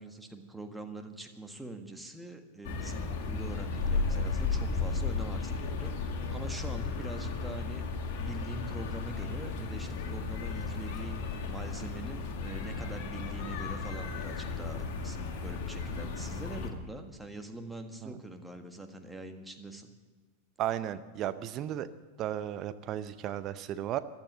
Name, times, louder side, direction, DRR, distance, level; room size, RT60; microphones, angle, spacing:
voice 1, 0.0-5.9 6.3-7.9 8.2-19.9, right 2 dB, 5° right, 5 dB, 1.6 m, -44 dB
sound 1, 2.6-16.7, left 4 dB, 45° left, 2.0 m, -34 dB
voice 2, 20.6-21.9 22.2-24.0, right 11 dB, 35° right, 12 dB, 0.6 m, -34 dB
15.0 x 12.0 x 7.7 m, 1.4 s
figure-of-eight pair, 90°, 0 cm